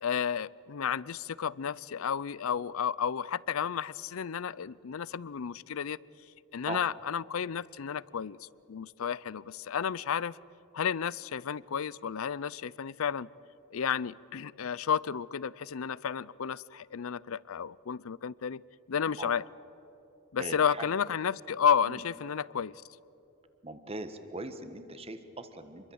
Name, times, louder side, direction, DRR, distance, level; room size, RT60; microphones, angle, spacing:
voice 1, 0.0-6.0 6.5-10.4 10.7-13.3 13.7-18.6 18.9-19.4 20.3-22.8, left 7 dB, 75° left, 22 dB, 0.5 m, -32 dB
voice 2, 20.4-20.9 21.9-22.0 23.6-25.9, right 2 dB, 25° right, 10 dB, 1.4 m, -40 dB
27.0 x 22.0 x 7.9 m, 3.0 s
head